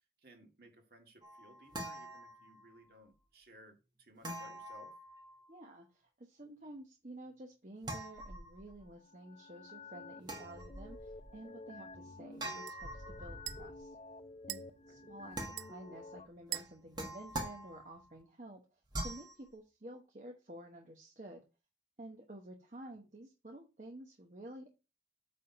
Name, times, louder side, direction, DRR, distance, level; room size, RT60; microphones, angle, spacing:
voice 1, 0.2-4.9 14.9-15.0 22.8-22.9, equal, 60° right, 3 dB, 2.0 m, -60 dB
sound 1, 1.2-2.8 4.2-5.6 7.8-8.9 10.2-11.3 12.4-13.8 15.3-16.0 16.5-18.1 18.9-19.4, right 1 dB, 25° right, 1.4 m, -44 dB
voice 2, 5.5-13.9 14.5-21.4 22.0-24.7, right 1 dB, 45° right, 1 dB, 1.0 m, -51 dB
sound 2, 8.9-16.3, left 3 dB, 30° left, 0.4 m, -51 dB
sound 3, 10.4-18.2, right 16 dB, 90° right, 0.4 m, -50 dB
8.5 x 3.6 x 5.7 m, 0.29 s
head